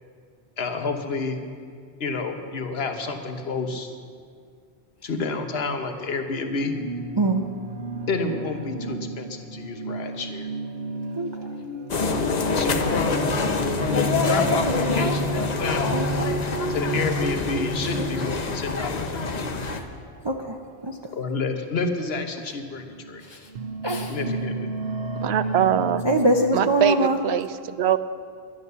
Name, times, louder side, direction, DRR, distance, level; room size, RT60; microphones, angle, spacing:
voice 1, 0.6-1.4 2.0-3.9 5.0-6.7 8.1-10.5 12.5-16.0 16.7-19.6 21.1-23.2 24.0-24.7, left 4 dB, 70° left, 6 dB, 1.3 m, -29 dB
sound 1, 6.5-18.8 19.6-19.9 21.1-21.2 21.8-22.0 22.7-26.2, right 1 dB, 70° right, 1.2 m, -32 dB
voice 2, 11.2-11.5 14.9-15.1 15.9-16.3 19.7-19.8 20.2-20.6 20.8-21.0 23.2-23.5 23.8-24.3 26.0-27.2, right 1 dB, 30° right, 2 dB, 0.6 m, -24 dB
sound 2, 11.9-19.8, left 3 dB, 45° left, 0.9 m, -26 dB
voice 3, 25.2-26.0 26.5-28.0, right 10 dB, 85° right, 13 dB, 0.9 m, -23 dB
11.5 x 11.0 x 6.8 m, 2.2 s
omnidirectional pair, 1.1 m